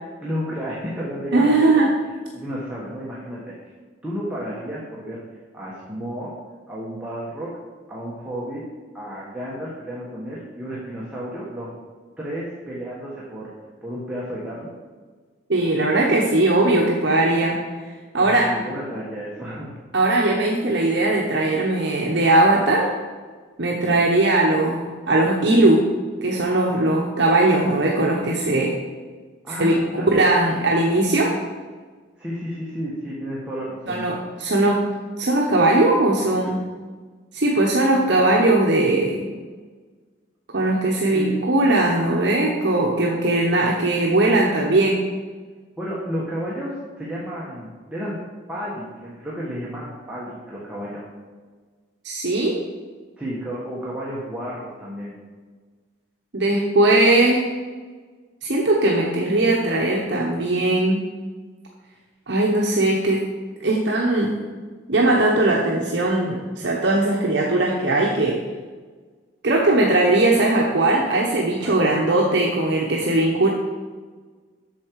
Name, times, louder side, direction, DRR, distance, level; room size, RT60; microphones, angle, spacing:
voice 1, 0.2-1.9 2.3-3.5 4.0-5.2 5.5-6.3 6.7-7.5 7.9-8.6 8.9-11.7 12.2-13.5 13.8-14.7 18.2-19.7 29.4-30.3 32.2-34.0 41.0-41.4 45.8-48.2 48.5-51.0 53.2-55.1 71.6-71.9, equal, 5° right, -7 dB, 1.3 m, -32 dB
voice 2, 1.3-1.9 15.5-17.6 18.1-18.5 19.9-22.9 23.6-25.9 26.2-28.7 29.6-29.9 30.1-31.3 33.9-34.8 35.2-36.6 37.3-39.2 40.5-45.0 52.0-52.6 56.3-57.4 58.4-61.0 62.3-63.2 63.6-64.3 64.9-68.4 69.4-73.5, right 2 dB, 60° right, -2 dB, 0.9 m, -19 dB
8.5 x 6.5 x 4.7 m, 1.4 s
head